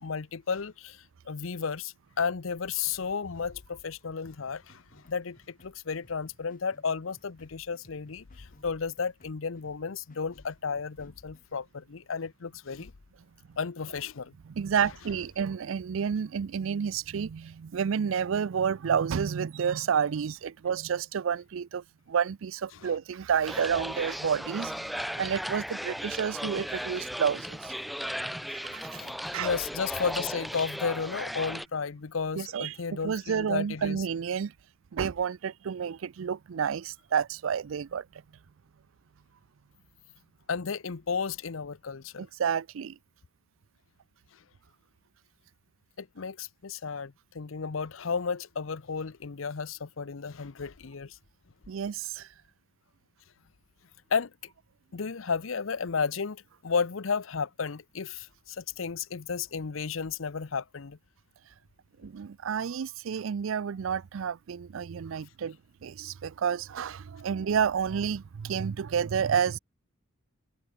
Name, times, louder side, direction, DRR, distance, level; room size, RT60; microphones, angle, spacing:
voice 1, 0.0-12.9 13.6-14.4 22.8-22.9 29.0-34.0 40.5-42.3 46.0-51.2 54.1-54.3 54.9-61.0, left 5 dB, 85° left, 0.7 m, -33 dB
sound 1, 4.2-11.4, left 1 dB, 45° left, 6.5 m, -61 dB
voice 2, 14.6-27.7 28.5-29.0 29.3-29.5 32.4-32.8 33.0-34.5 34.9-38.0 42.2-43.0 51.7-52.3 62.0-65.6 65.8-69.6, right 7 dB, 80° right, 0.4 m, -30 dB
sound 2, 23.5-31.7, equal, ahead, 2.4 m, -36 dB
head